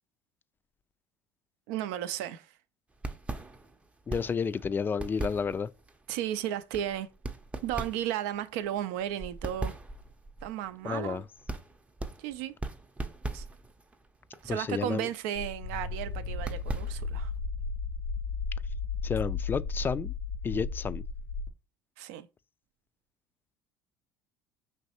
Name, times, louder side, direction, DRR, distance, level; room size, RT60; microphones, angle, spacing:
voice 1, 1.7-2.5 6.1-7.1 7.6-9.8 10.4-11.2 12.2-12.5 13.3-13.4 14.4-17.3 22.0-22.3, right 11 dB, 75° right, 0.4 m, -34 dB
sound 1, 2.9-17.3, right 2 dB, 15° right, 0.6 m, -41 dB
voice 2, 4.1-5.7 10.8-11.2 14.5-15.1 19.0-20.1 20.4-21.0, left 6 dB, 25° left, 0.3 m, -31 dB
sound 2, 15.3-21.5, left 4 dB, 85° left, 0.6 m, -34 dB
5.3 x 3.1 x 2.9 m
hypercardioid pair, 75°, 8 cm